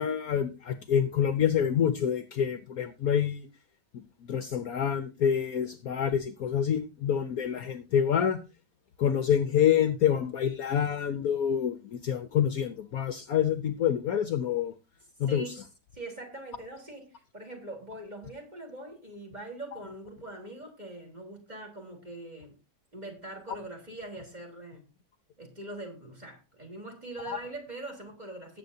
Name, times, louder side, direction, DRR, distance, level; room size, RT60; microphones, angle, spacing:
voice 1, 0.0-3.4 4.3-8.4 9.0-11.8 12.0-14.7 15.2-15.4 27.3-27.4, left 8 dB, 65° left, 11 dB, 1.1 m, -27 dB
voice 2, 15.2-15.6 15.9-22.6 22.9-24.8 25.4-28.6, right 2 dB, 25° right, 2 dB, 3.7 m, -42 dB
18.5 x 8.3 x 2.7 m, 0.30 s
omnidirectional pair, 1.9 m